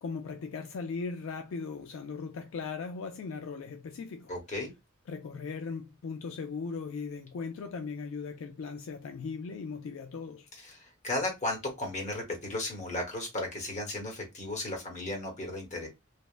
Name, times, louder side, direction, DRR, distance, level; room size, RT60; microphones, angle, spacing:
voice 1, 0.0-4.3 5.1-10.5, left 5 dB, 70° left, 0.4 m, -38 dB
voice 2, 4.3-4.7 10.6-15.9, left 2 dB, 35° left, 1.0 m, -35 dB
3.3 x 2.0 x 2.3 m
head